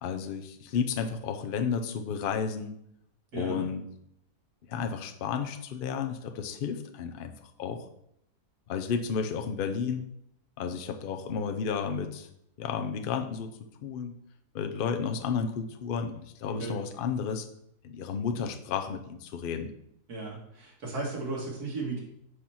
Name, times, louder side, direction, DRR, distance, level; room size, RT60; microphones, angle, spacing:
voice 1, 0.0-2.7 3.3-3.8 4.7-7.3 7.6-7.8 8.7-10.0 10.6-12.3 12.6-13.5 13.8-14.2 14.5-17.5 17.8-19.7, left 6 dB, 70° left, 6 dB, 0.5 m, -32 dB
voice 2, 3.3-3.7 16.5-16.8 20.1-22.0, right 3 dB, 75° right, -2 dB, 2.2 m, -35 dB
4.8 x 4.4 x 5.7 m, 0.75 s
omnidirectional pair, 1.7 m